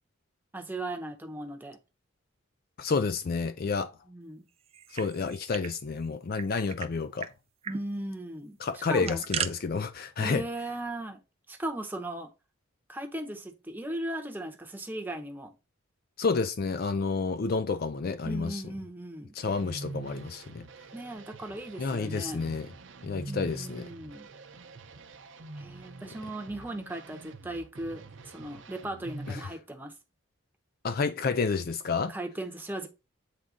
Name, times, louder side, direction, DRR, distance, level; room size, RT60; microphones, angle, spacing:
voice 1, 0.5-1.8 4.1-4.5 7.7-8.6 8.9-9.2 10.2-11.2 11.5-12.3 12.9-15.5 18.2-19.3 20.9-22.4 23.3-24.3 25.5-29.9 32.1-32.9, right 1 dB, 10° right, 0.9 m, -37 dB
voice 2, 2.8-3.9 4.9-7.3 8.6-10.4 16.2-18.6 19.3-20.7 21.8-22.7 23.0-23.9 29.3-29.5 30.8-32.1, left 4 dB, 45° left, 0.4 m, -30 dB
sound 1, 4.7-5.7 6.0-6.1 6.4-6.9 7.2-7.3 7.6-7.8 8.8-9.5, right 8 dB, 30° right, 0.4 m, -36 dB
sound 2, 19.5-29.5, right 2 dB, 60° right, 0.7 m, -45 dB
8.1 x 3.7 x 3.8 m
head